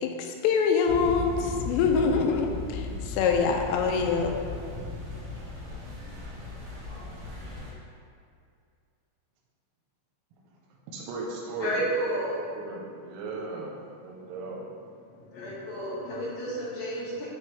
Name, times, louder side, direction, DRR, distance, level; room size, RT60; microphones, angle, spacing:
voice 1, 0.0-4.4, left 5 dB, 80° left, 3 dB, 2.7 m, -25 dB
sound 1, 0.9-7.7, left 3 dB, 50° right, 1.9 m, -37 dB
voice 2, 10.9-12.1 12.5-13.7 14.0-14.6, right 3 dB, 85° right, -2 dB, 3.1 m, -36 dB
voice 3, 11.6-12.4 14.2-14.3 15.3-17.3, right 1 dB, 60° left, -8 dB, 3.1 m, -31 dB
9.7 x 4.2 x 3.2 m, 2.3 s
omnidirectional pair, 5.3 m